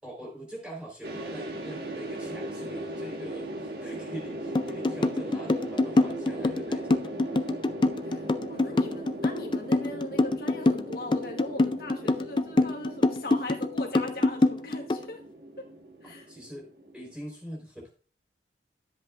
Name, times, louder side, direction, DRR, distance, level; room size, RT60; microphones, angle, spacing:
voice 1, 0.0-7.0 16.0-16.7 16.9-17.9, equal, 5° right, -1 dB, 3.9 m, -43 dB
sound 1, 1.0-17.2, right 1 dB, 55° right, 1.4 m, -38 dB
sound 2, 4.5-15.1, left 2 dB, 25° left, 0.4 m, -25 dB
voice 2, 8.0-15.2 15.6-15.7 16.0-16.2, left 1 dB, 55° left, 1 dB, 1.4 m, -39 dB
12.5 x 7.9 x 2.5 m, 0.40 s
head